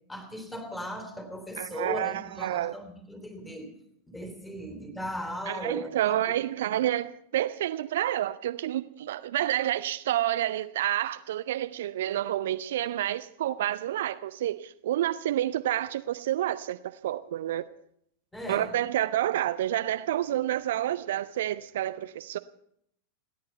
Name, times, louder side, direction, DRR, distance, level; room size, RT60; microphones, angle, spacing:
voice 1, 0.1-3.7 4.1-6.4 18.3-18.7, left 1 dB, 10° left, 3.5 m, -38 dB
voice 2, 1.6-2.7 5.5-16.8 17.0-17.7 18.5-22.4, right 13 dB, 55° right, 0.6 m, -29 dB
30.0 x 10.5 x 4.5 m
figure-of-eight pair, 90°, 0 cm